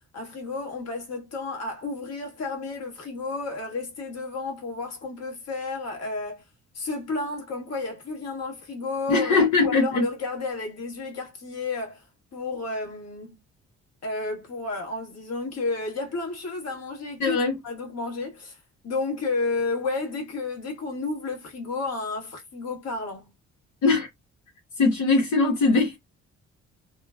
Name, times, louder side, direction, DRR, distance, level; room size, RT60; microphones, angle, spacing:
voice 1, 0.1-6.5 6.7-12.0 12.3-13.3 14.0-17.4 17.6-18.6 18.8-23.3, left 3 dB, 55° left, 1.4 m, -31 dB
voice 2, 9.1-10.0 17.2-17.6 23.8-24.1 24.8-26.0, left 3 dB, 75° left, 1.0 m, -21 dB
3.0 x 2.1 x 2.2 m
cardioid pair, 90°, 30 cm